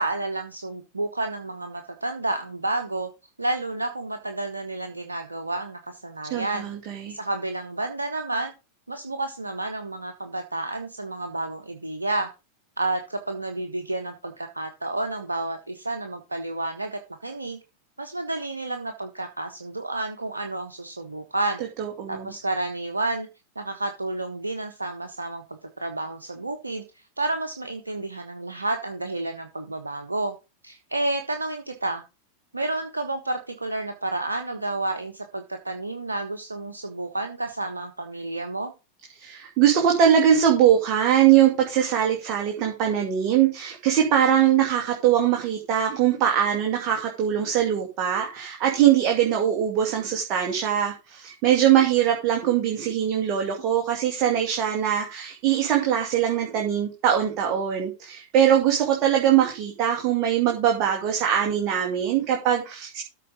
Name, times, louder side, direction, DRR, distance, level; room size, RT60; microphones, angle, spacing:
voice 1, 0.0-3.1 3.4-6.7 7.1-8.5 8.9-12.3 12.8-17.6 18.0-21.6 22.1-23.3 23.5-26.8 27.2-30.3 30.6-32.0 32.5-38.7, right 2 dB, 80° right, 6 dB, 1.1 m, -30 dB
voice 2, 6.3-7.2 21.8-22.3 39.2-63.0, right 9 dB, 40° right, 1 dB, 2.3 m, -22 dB
13.5 x 5.0 x 5.1 m, 0.28 s
figure-of-eight pair, 90°, 0 cm